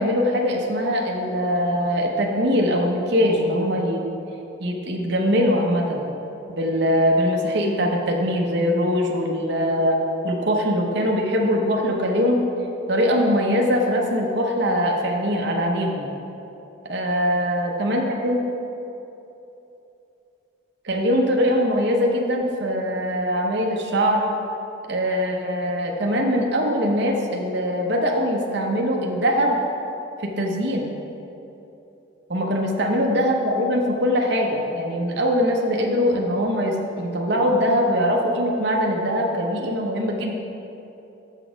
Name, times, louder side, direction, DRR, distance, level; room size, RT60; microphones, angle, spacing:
voice 1, 0.0-4.0 4.6-6.1 6.5-10.0 10.2-12.4 12.9-16.1 16.8-18.4 20.8-24.3 24.9-29.6 30.2-30.9 32.3-40.3, equal, 55° right, 0 dB, 0.8 m, -22 dB
7.2 x 6.1 x 5.0 m, 3.0 s
head